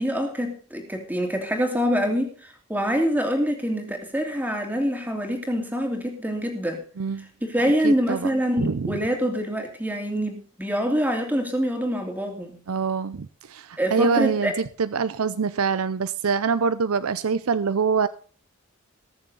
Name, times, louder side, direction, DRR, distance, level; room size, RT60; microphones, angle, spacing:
voice 1, 0.0-6.8 7.4-12.5 13.8-14.5, equal, 10° right, 2 dB, 2.8 m, -25 dB
voice 2, 7.0-7.3 7.8-8.3 8.6-8.9 12.7-18.1, right 5 dB, 80° right, 14 dB, 0.6 m, -25 dB
21.0 x 7.2 x 4.0 m, 0.42 s
head